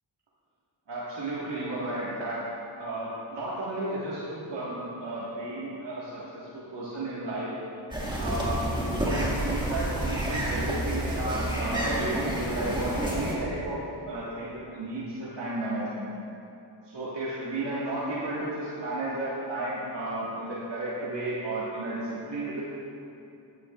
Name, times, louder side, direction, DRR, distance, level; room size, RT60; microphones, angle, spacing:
voice 1, 0.9-2.4 2.8-7.5 8.2-13.8 14.1-16.1 16.8-22.6, right 2 dB, 65° right, -8 dB, 1.7 m, -33 dB
sound 1, 7.9-13.4, right 1 dB, 10° right, 1.9 m, -29 dB
12.5 x 9.7 x 2.4 m, 2.8 s
cardioid pair, 65°, 46 cm